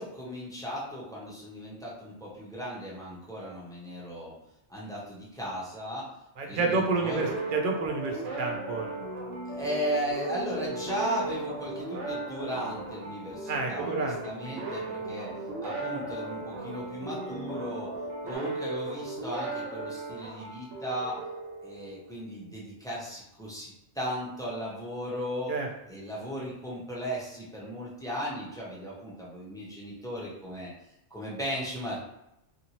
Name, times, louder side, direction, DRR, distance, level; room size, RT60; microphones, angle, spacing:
voice 1, 0.0-4.3 4.7-6.1 6.5-7.3 9.5-15.3 15.6-17.9 18.2-21.2 21.6-25.6 25.9-30.7 31.1-32.0, equal, 5° left, -6 dB, 0.6 m, -36 dB
voice 2, 6.4-9.0 13.5-14.2 14.4-14.7 25.5-25.7, right 3 dB, 60° right, 1 dB, 0.6 m, -30 dB
sound 1, 6.9-22.2, right 3 dB, 80° right, 1.0 m, -37 dB
sound 2, 7.1-18.4, left 1 dB, 45° left, 1.1 m, -42 dB
2.6 x 2.5 x 2.9 m, 0.84 s
omnidirectional pair, 1.2 m